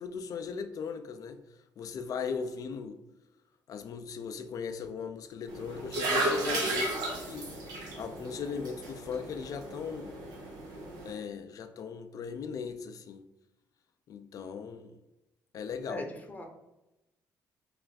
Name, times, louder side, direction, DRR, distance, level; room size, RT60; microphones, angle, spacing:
voice 1, 0.0-1.4 1.8-3.0 3.7-6.9 7.1-7.5 7.8-10.1 11.0-13.2 14.1-14.9 15.5-16.0, left 6 dB, 60° left, 8 dB, 0.4 m, -38 dB
sound 1, 5.5-11.1, right 1 dB, 75° right, 1.0 m, -34 dB
voice 2, 15.9-16.5, left 1 dB, 20° left, 2 dB, 0.8 m, -39 dB
3.2 x 2.5 x 4.0 m, 0.94 s
cardioid pair, 80°, 7 cm